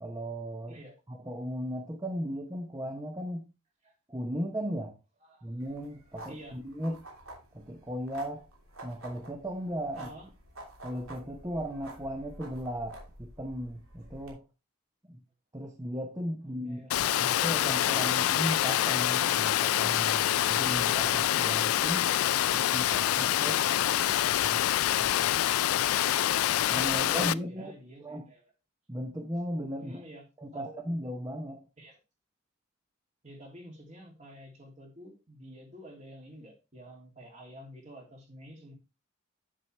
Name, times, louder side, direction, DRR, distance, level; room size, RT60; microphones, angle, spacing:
voice 1, 0.0-0.8 1.1-3.4 4.1-4.9 5.4-7.0 7.5-8.5 8.8-10.1 10.8-14.4 15.0-15.2 15.5-22.1 22.5-23.6 24.4-24.6 25.0-25.4 26.7-27.7 28.0-28.3 28.9-30.0 30.4-31.6, equal, 15° right, 0.8 m, -36 dB
sound 1, 5.6-14.3, right 1 dB, 80° right, 3.0 m, -49 dB
voice 2, 9.9-10.3 16.5-17.3 23.8-24.2 26.9-28.4 29.8-30.2 30.5-30.8 31.8-32.0 33.2-38.7, equal, 35° right, 2.7 m, -49 dB
Water, 16.9-27.3, left 12 dB, 90° left, 0.3 m, -26 dB
8.0 x 7.7 x 3.3 m
head